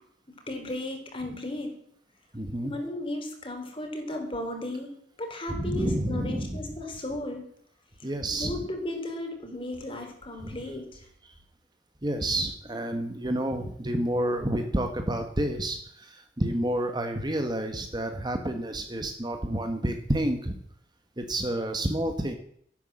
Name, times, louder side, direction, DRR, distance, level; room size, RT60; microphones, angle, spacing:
voice 1, 0.5-1.7 2.6-4.9 5.2-7.4 8.0-8.1 8.4-11.0, left 1 dB, 30° left, 4 dB, 3.7 m, -35 dB
voice 2, 2.3-2.7 5.5-6.6 8.0-8.6 10.4-10.6 12.0-20.6 21.2-22.3, right 1 dB, 25° right, 6 dB, 1.3 m, -29 dB
13.5 x 11.0 x 7.6 m, 0.67 s
head